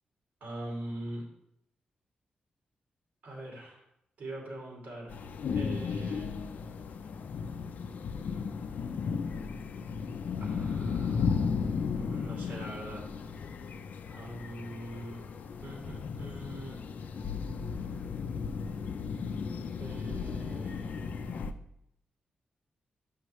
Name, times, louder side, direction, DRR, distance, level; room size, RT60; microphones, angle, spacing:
voice 1, 0.4-1.2 3.2-3.9 4.2-5.1 5.5-6.3 10.4-11.4 11.9-13.1 14.1-15.2 15.6-16.8 19.8-21.4, right 1 dB, 70° right, -2 dB, 2.5 m, -43 dB
sound 1, 5.1-21.5, left 5 dB, 60° left, 0.4 m, -35 dB
7.9 x 5.5 x 3.1 m, 0.78 s
wide cardioid pair, 145°, 3 cm